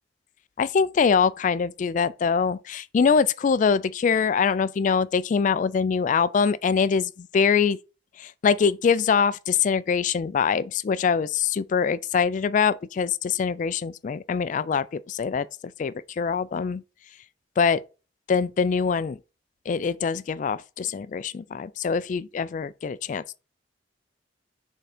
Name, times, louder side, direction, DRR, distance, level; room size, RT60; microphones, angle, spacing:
voice 1, 0.6-7.8 8.2-15.5 15.8-16.8 17.6-17.8 18.3-19.2 19.7-23.4, left 6 dB, 45° left, 0.3 m, -23 dB
6.6 x 3.7 x 4.3 m
head